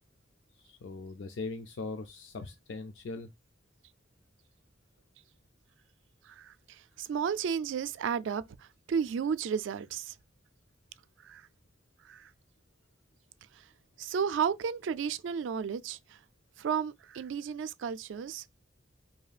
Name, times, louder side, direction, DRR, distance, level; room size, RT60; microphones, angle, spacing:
voice 1, 0.6-3.3, left 3 dB, 80° left, 0.4 m, -40 dB
voice 2, 7.0-8.4 8.9-10.1 11.2-11.4 12.1-12.3 14.0-16.2 16.6-18.4, right 7 dB, 90° right, 0.3 m, -32 dB
4.9 x 2.7 x 2.3 m
head